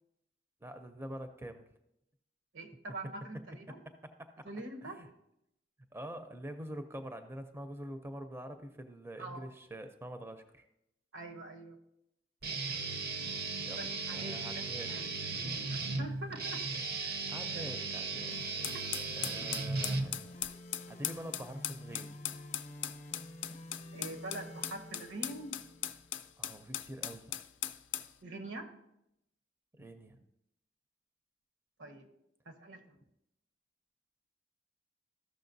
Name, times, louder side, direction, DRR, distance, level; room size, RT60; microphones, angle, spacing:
voice 1, 0.6-1.6 3.9-4.5 4.8-5.1 5.9-10.6 13.6-15.2 17.3-18.4 19.1-20.3 20.9-22.2 26.4-27.3 29.8-30.2, right 1 dB, 15° right, 7 dB, 0.5 m, -45 dB
voice 2, 2.5-3.8 4.4-5.0 9.2-9.5 11.1-11.8 13.8-15.3 15.7-16.6 17.0-17.2 17.5-17.6 23.9-25.6 28.2-28.7 31.8-32.1 32.4-33.0, right 2 dB, 85° right, 5 dB, 1.1 m, -44 dB
Guitar, 12.4-20.5, right 3 dB, 55° right, 0.6 m, -36 dB
sound 1, 18.3-26.3, left 1 dB, 40° left, 0.6 m, -50 dB
sound 2, 18.6-28.1, left 12 dB, 75° left, 0.4 m, -39 dB
14.0 x 6.2 x 2.6 m, 0.81 s
head